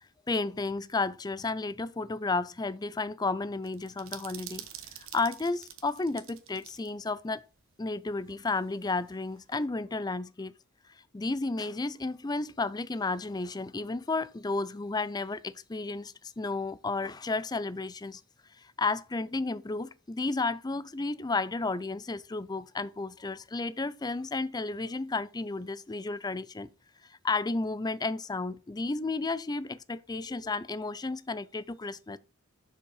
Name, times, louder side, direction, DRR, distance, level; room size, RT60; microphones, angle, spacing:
voice 1, 0.3-4.7 5.1-7.4 7.8-10.5 11.1-18.2 18.6-26.7 27.2-32.2, left 3 dB, 20° left, 0.4 m, -32 dB
sound 1, 3.6-6.9 7.2-7.3 8.3-9.7, right 11 dB, 75° right, 1.2 m, -47 dB
7.3 x 6.7 x 4.8 m
head